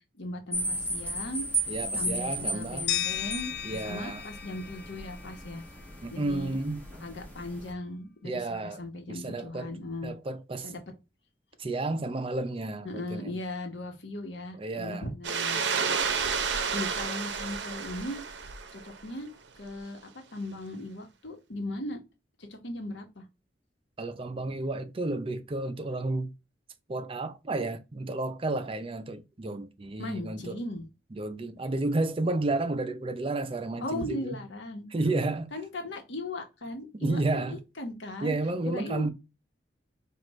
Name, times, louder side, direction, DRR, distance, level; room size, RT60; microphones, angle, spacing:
voice 1, 0.2-1.4 1.9-5.6 6.1-6.5 7.0-10.1 10.6-10.8 12.8-15.6 16.7-18.2 18.7-19.3 19.6-20.0 20.3-22.0 22.4-23.2 30.0-30.8 33.8-34.9 35.5-38.4 38.7-39.1, left 1 dB, 90° left, 1.1 m, -38 dB
sound 1, 0.5-7.7, right 1 dB, 10° left, 1.3 m, -35 dB
voice 2, 1.7-2.9 3.6-4.2 6.0-6.8 8.2-8.8 9.1-9.7 10.0-10.7 11.6-13.3 14.5-15.1 24.0-26.3 26.9-30.6 31.1-34.4 34.9-35.5 37.0-37.6 38.2-39.1, right 2 dB, 30° right, 0.5 m, -31 dB
sound 2, 2.9-5.8, left 11 dB, 60° left, 0.5 m, -35 dB
sound 3, 15.2-19.0, right 6 dB, 75° right, 0.6 m, -30 dB
4.7 x 2.5 x 3.1 m
head